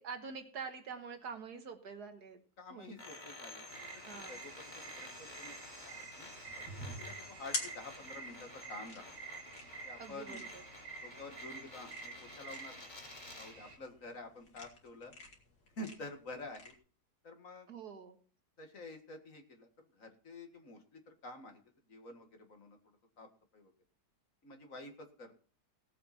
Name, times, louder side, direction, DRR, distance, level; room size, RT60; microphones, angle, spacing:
voice 1, 0.0-2.4 2.7-3.0 4.1-4.4 10.0-10.6 17.7-18.2, right 5 dB, 70° right, 7 dB, 1.9 m, -46 dB
voice 2, 2.6-5.6 5.8-9.1 9.8-10.4 11.0-12.8 13.2-15.1 15.8-16.7 17.2-17.7 18.6-19.7 19.9-21.6 21.9-22.8 23.2-23.3 23.5-23.7 24.4-25.4, left 2 dB, 50° left, 5 dB, 2.1 m, -49 dB
sound 1, 3.0-13.6, left 2 dB, 30° left, 1.7 m, -52 dB
sound 2, 3.7-13.8, right 5 dB, 45° right, 2.3 m, -50 dB
sound 3, 6.4-16.7, left 2 dB, 85° left, 3.0 m, -47 dB
18.0 x 7.7 x 4.2 m, 0.41 s
omnidirectional pair, 1.8 m